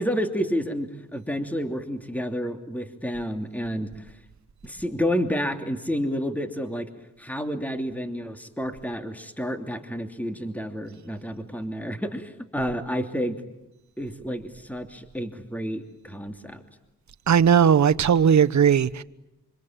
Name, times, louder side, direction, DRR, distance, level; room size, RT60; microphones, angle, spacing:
voice 1, 0.0-4.1 4.6-6.9 7.2-13.4 14.0-16.6, equal, 5° left, 2.9 m, -30 dB
voice 2, 17.3-19.0, right 8 dB, 60° right, 1.1 m, -18 dB
26.0 x 25.5 x 9.0 m
cardioid pair, 65°, 31 cm